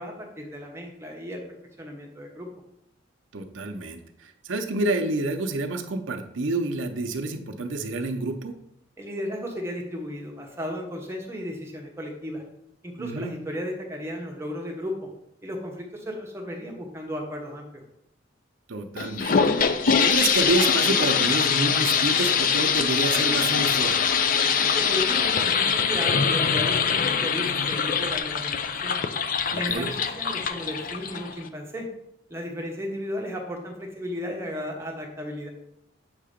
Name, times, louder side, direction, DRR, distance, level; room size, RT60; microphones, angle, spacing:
voice 1, 0.0-1.4 1.8-2.5 9.0-12.4 12.8-15.1 15.4-17.8 24.5-29.0 29.5-31.9 32.3-35.5, equal, 15° right, 0 dB, 0.9 m, -34 dB
voice 2, 3.3-8.5 13.0-13.3 18.7-24.1 29.5-29.9, right 2 dB, 75° right, 5 dB, 0.6 m, -28 dB
sound 1, 19.0-31.5, left 6 dB, 45° left, 0.4 m, -23 dB
7.3 x 2.8 x 5.0 m, 0.79 s
head